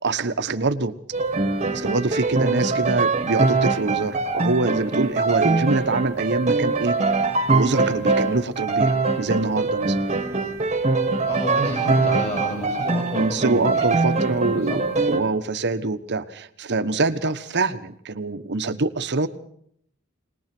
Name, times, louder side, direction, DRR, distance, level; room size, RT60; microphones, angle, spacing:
voice 1, 0.0-0.9 1.7-6.9 7.5-10.0 13.2-14.8 15.1-19.3, right 3 dB, 55° right, 10 dB, 1.2 m, -24 dB
sound 1, 1.1-15.2, right 3 dB, 30° right, 1.6 m, -23 dB
voice 2, 11.2-14.2 14.4-14.8, equal, 30° left, 1 dB, 7.2 m, -30 dB
21.5 x 20.0 x 6.1 m, 0.69 s
head